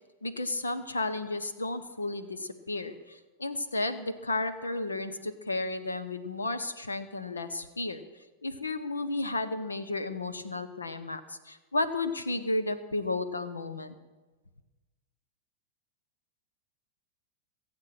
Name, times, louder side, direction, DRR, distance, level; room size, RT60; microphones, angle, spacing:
voice 1, 0.2-8.0 8.4-14.0, left 2 dB, 90° left, 12 dB, 1.1 m, -33 dB
23.0 x 8.0 x 6.0 m, 1.2 s
hypercardioid pair, 95°, 0 cm